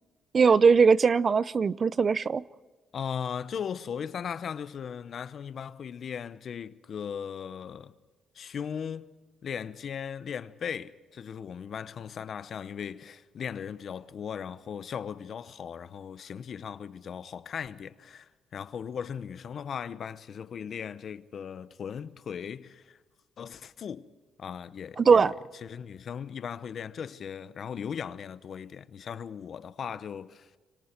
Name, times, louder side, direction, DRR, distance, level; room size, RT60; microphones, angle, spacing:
voice 1, 0.3-2.4 25.0-25.3, right 5 dB, 40° right, 0.6 m, -20 dB
voice 2, 2.9-7.9 8.3-9.1 9.4-23.0 23.4-24.1 24.4-25.3 25.6-30.6, left 7 dB, 55° left, 0.9 m, -38 dB
26.5 x 25.0 x 4.6 m
cardioid pair, 90°, 0 cm